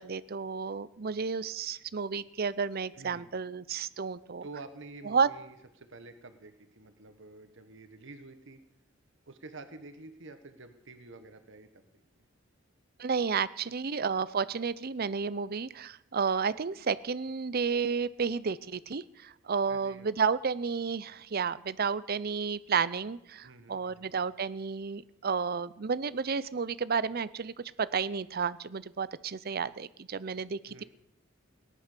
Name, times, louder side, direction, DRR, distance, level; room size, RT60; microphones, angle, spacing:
voice 1, 0.0-4.5 5.1-5.3 13.0-27.5 27.8-30.8, right 5 dB, 50° right, 17 dB, 0.6 m, -31 dB
voice 2, 2.9-3.3 4.4-8.6 9.3-11.8 19.7-20.1 23.4-24.1 30.7-30.8, right 3 dB, 65° right, 8 dB, 1.4 m, -49 dB
18.5 x 11.0 x 6.8 m, 0.83 s
head